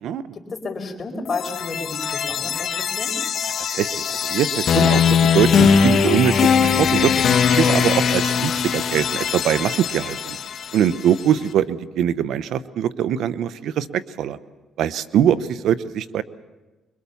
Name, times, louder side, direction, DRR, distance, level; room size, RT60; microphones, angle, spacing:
voice 1, 0.3-3.2, left 3 dB, 40° left, 3 dB, 4.8 m, -31 dB
sound 1, 1.3-11.2, left 7 dB, 60° left, 1.6 m, -20 dB
voice 2, 3.6-7.1 7.5-10.4 10.7-14.4 14.8-16.2, right 9 dB, 80° right, 15 dB, 0.9 m, -22 dB
25.0 x 23.0 x 7.1 m, 1.2 s
cardioid pair, 90°, 0 cm